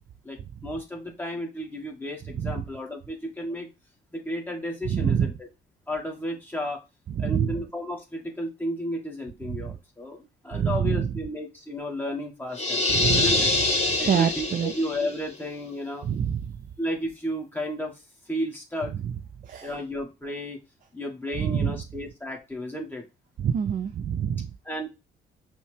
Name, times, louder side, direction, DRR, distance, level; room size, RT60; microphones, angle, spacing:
voice 1, 0.6-3.7 4.1-5.3 5.9-6.8 7.2-10.2 10.4-12.8 13.1-13.5 14.0-16.0 16.8-17.9 18.3-18.9 19.6-20.6 20.9-23.0 24.6-24.9, equal, 10° left, 0 dB, 1.5 m, -33 dB
voice 2, 4.8-5.3 7.2-7.6 9.5-9.8 10.5-11.2 12.9-13.6 14.1-14.7 16.0-16.6 19.0-19.1 19.4-19.8 21.3-21.8 23.4-24.5, right 8 dB, 45° right, 9 dB, 0.4 m, -26 dB
sound 1, 12.5-15.1, left 2 dB, 30° left, 1.5 m, -24 dB
5.5 x 2.2 x 3.2 m, 0.26 s
cardioid pair, 90°, 20 cm